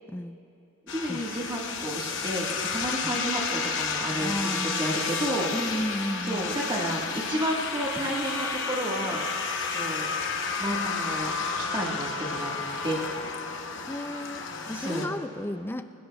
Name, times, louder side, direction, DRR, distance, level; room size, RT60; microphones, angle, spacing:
sound 1, 0.9-15.1, left 5 dB, 55° left, 0.9 m, -31 dB
voice 1, 0.9-2.5 2.7-4.5 4.8-5.5 6.2-9.2 9.7-10.1 10.6-12.5 12.8-13.0 14.7-15.1, right 1 dB, 20° right, -3 dB, 1.4 m, -31 dB
voice 2, 4.2-4.8 5.5-6.5 13.8-15.9, left 1 dB, 10° left, 10 dB, 0.3 m, -33 dB
27.5 x 17.0 x 2.2 m, 2.7 s
head